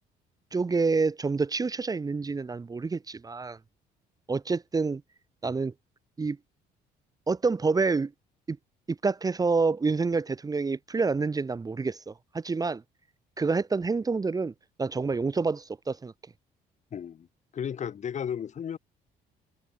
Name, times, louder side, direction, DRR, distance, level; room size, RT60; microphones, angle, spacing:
voice 1, 0.5-3.6 4.3-5.0 5.4-5.7 6.2-6.4 7.3-8.1 8.5-8.6 8.9-12.8 13.4-14.5 14.8-16.1, right 4 dB, 20° right, 1.4 m, -27 dB
voice 2, 16.9-17.3 17.5-18.8, left 8 dB, 45° left, 2.5 m, -34 dB
cardioid pair, 110°, 17 cm